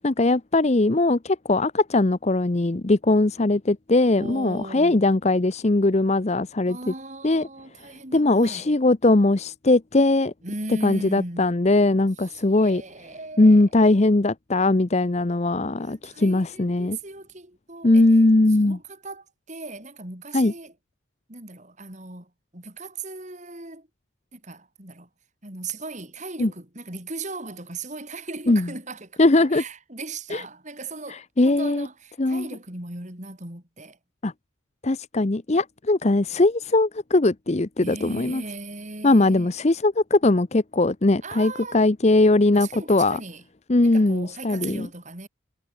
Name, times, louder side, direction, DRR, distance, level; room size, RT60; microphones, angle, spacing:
voice 1, 0.0-6.9 7.2-7.5 8.1-10.3 10.8-12.8 13.4-17.0 17.8-18.8 20.3-20.5 26.4-26.5 28.5-28.7 29.2-29.6 30.3-30.4 31.1-31.9 32.2-32.5 34.2-34.3 34.8-38.4 39.0-43.2 43.7-44.9, left 2 dB, 30° left, 0.7 m, -20 dB
voice 2, 4.2-5.1 6.7-8.7 10.4-11.5 12.3-13.6 15.7-18.1 18.6-20.7 21.3-23.9 24.3-25.1 25.4-34.0 37.8-39.5 41.2-41.9 42.5-43.4 43.8-45.3, right 3 dB, 35° right, 4.4 m, -38 dB
head